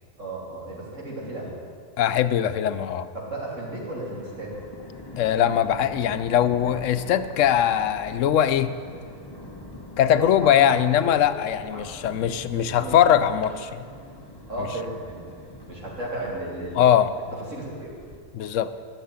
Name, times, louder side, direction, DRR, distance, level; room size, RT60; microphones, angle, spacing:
voice 1, 0.2-1.5 3.1-4.6 10.1-11.1 11.7-11.9 12.6-13.0 14.5-16.8 17.5-17.9, right 1 dB, 90° right, -4 dB, 3.3 m, -34 dB
voice 2, 2.0-3.1 5.2-8.7 10.0-13.9 14.6-14.7 16.7-17.1 18.3-18.7, left 10 dB, 85° left, 12 dB, 1.0 m, -21 dB
Thunder, 3.4-18.2, left 1 dB, 20° left, 1.3 m, -44 dB
12.0 x 7.0 x 9.6 m, 2.1 s
omnidirectional pair, 1.3 m